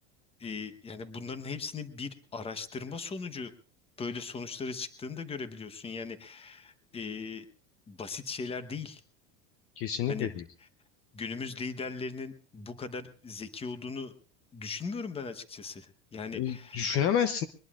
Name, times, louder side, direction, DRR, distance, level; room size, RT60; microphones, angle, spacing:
voice 1, 0.4-3.5 4.0-7.5 7.9-9.0 10.1-10.3 11.1-14.1 14.5-16.8, left 4 dB, 15° left, 11 dB, 1.1 m, -38 dB
voice 2, 9.8-10.4 16.3-17.4, left 8 dB, 40° left, 11 dB, 0.8 m, -29 dB
22.5 x 20.0 x 2.5 m, 0.40 s
supercardioid pair, 140°, 35 cm